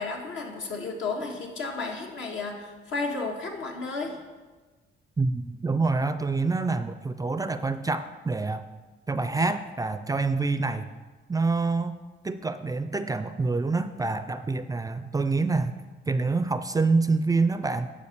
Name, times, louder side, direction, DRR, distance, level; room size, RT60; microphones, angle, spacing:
voice 1, 0.0-4.2, left 3 dB, 75° left, 1 dB, 1.7 m, -33 dB
voice 2, 5.2-8.6 9.1-10.9 11.3-15.8 16.1-17.9, right 3 dB, 20° right, 11 dB, 0.4 m, -26 dB
9.4 x 4.9 x 6.8 m, 1.3 s
cardioid pair, 90°, 20 cm